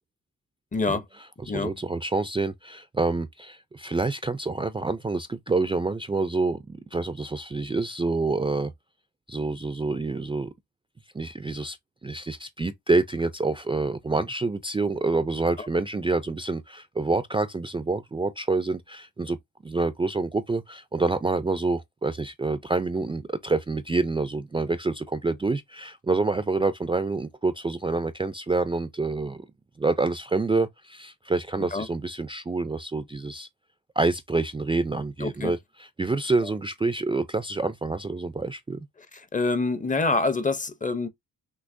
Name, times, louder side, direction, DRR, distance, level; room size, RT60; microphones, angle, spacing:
voice 1, 0.7-1.0 1.5-1.7 31.7-31.9 35.2-35.5 39.3-41.1, left 3 dB, 20° left, 0.6 m, -26 dB
voice 2, 1.4-8.7 9.3-10.5 11.1-11.8 12.0-19.4 19.6-29.4 29.8-33.5 34.0-38.9, right 3 dB, 15° right, 0.4 m, -27 dB
6.1 x 2.9 x 2.6 m
cardioid pair, 100°, 35 cm